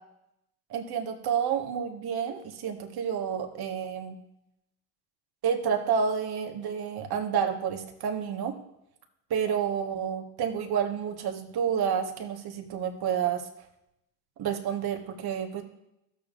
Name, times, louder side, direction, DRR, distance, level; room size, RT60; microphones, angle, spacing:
voice 1, 0.7-4.2 5.4-8.5 9.3-13.5 14.4-15.6, right 7 dB, 55° right, 4 dB, 1.5 m, -29 dB
15.5 x 7.1 x 2.5 m, 0.84 s
hypercardioid pair, 60°, 46 cm